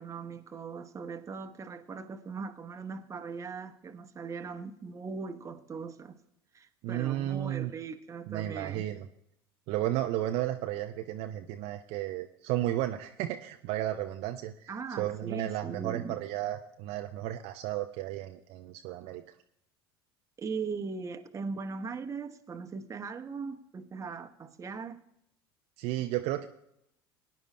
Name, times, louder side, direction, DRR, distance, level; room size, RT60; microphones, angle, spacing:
voice 1, 0.0-6.1 6.5-8.9 14.7-16.2 20.4-25.0, right 5 dB, 25° right, 1.0 m, -39 dB
voice 2, 6.8-7.7 8.3-9.1 9.7-14.5 15.0-19.2 25.8-26.5, right 13 dB, 55° right, 0.6 m, -33 dB
22.0 x 10.5 x 2.2 m
figure-of-eight pair, 75°, 13 cm